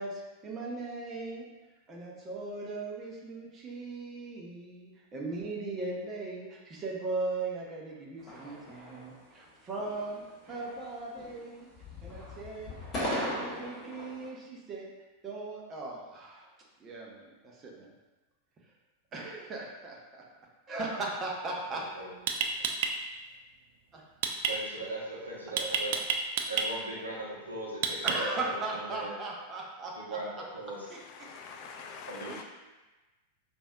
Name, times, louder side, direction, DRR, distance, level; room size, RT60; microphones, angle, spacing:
voice 1, 0.0-1.5 1.9-11.7 12.0-12.7 13.0-14.9 15.2-16.5 16.8-17.9 19.1-20.2 20.7-21.8 23.9-24.0 26.5-26.6 28.0-30.2 30.9-31.3 32.3-32.4, right 3 dB, 25° right, -2 dB, 0.8 m, -38 dB
sound 1, 8.2-9.4 9.8-10.2 10.5-11.5 11.7-14.3, left 1 dB, 25° left, 1.1 m, -38 dB
sound 2, 21.6-21.8 22.3-22.9 24.2-24.5 25.6-26.7 27.8-28.4, right 7 dB, 50° right, 0.3 m, -29 dB
voice 2, 21.7-22.1 24.5-26.0 26.5-29.1 30.0-30.9 32.1-32.4, right 2 dB, 80° right, -5 dB, 0.9 m, -39 dB
voice 3, 31.0-32.4, left 5 dB, 40° left, 4 dB, 0.4 m, -45 dB
5.1 x 2.6 x 2.4 m, 1.1 s
figure-of-eight pair, 90°, 0 cm